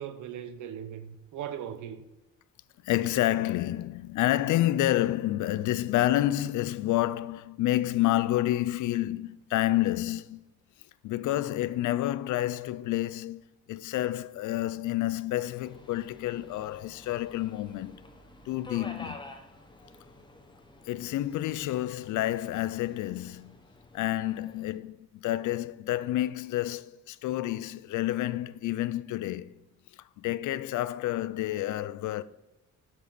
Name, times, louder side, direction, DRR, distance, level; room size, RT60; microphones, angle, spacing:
voice 1, 0.0-2.1, right 9 dB, 80° right, 1.0 m, -39 dB
voice 2, 2.8-10.4 11.0-13.4 13.7-18.0 18.5-19.2 20.9-23.6 23.9-29.5 30.2-32.2, left 14 dB, 80° left, 0.5 m, -29 dB
Subway metro underground, 15.6-24.8, left 2 dB, 15° left, 1.4 m, -50 dB
7.9 x 6.9 x 4.1 m
cardioid pair, 90°, 30 cm